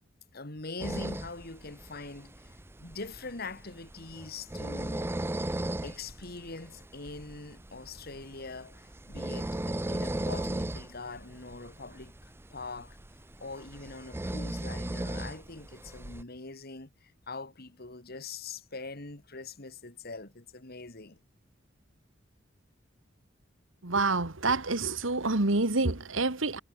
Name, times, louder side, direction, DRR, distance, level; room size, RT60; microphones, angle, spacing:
voice 1, 0.3-5.1 5.8-13.0 13.4-21.2, left 3 dB, 55° left, 2.6 m, -43 dB
sound 1, 0.8-16.2, right 1 dB, 10° right, 0.6 m, -37 dB
voice 2, 23.8-26.6, right 3 dB, 90° right, 2.1 m, -27 dB
head